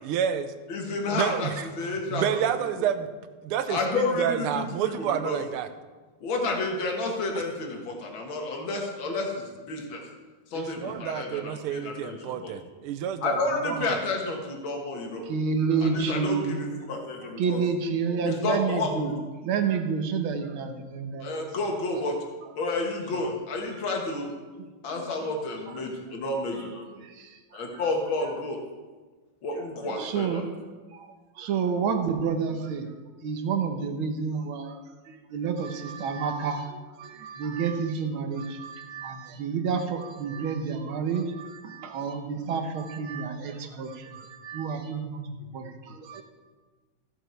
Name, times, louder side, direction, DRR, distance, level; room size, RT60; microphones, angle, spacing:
voice 1, 0.0-0.5 0.9-3.1 3.4-5.7 8.5-8.6 10.5-13.4 13.6-14.0, right 9 dB, 90° right, 10 dB, 1.6 m, -29 dB
voice 2, 0.7-1.5 1.8-2.4 3.7-5.4 6.2-10.0 10.5-12.5 13.2-15.2 15.8-17.6 18.3-18.9 21.2-22.2 22.6-24.3 24.8-26.8 27.5-28.6 29.4-30.4, left 2 dB, 65° left, 1 dB, 2.3 m, -30 dB
voice 3, 15.3-16.7 17.4-19.2 19.4-21.4 23.7-23.8 24.6-25.0 27.2-27.3 29.8-30.5 30.9-31.1 31.4-32.9 33.2-34.8 35.1-46.2, right 5 dB, 75° right, 6 dB, 1.8 m, -29 dB
14.5 x 6.7 x 4.5 m, 1.3 s
omnidirectional pair, 2.4 m